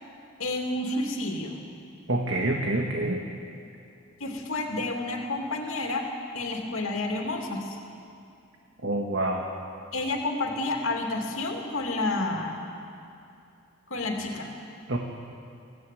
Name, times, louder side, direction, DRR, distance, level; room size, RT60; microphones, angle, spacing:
voice 1, 0.4-1.5 4.2-6.1 6.3-7.8 9.9-12.6 13.9-14.6, left 2 dB, 80° left, 1 dB, 2.7 m, -30 dB
voice 2, 2.1-3.2 8.8-9.4 14.9-15.0, right 1 dB, 60° right, 1 dB, 1.7 m, -27 dB
23.0 x 17.0 x 9.3 m, 2.6 s
head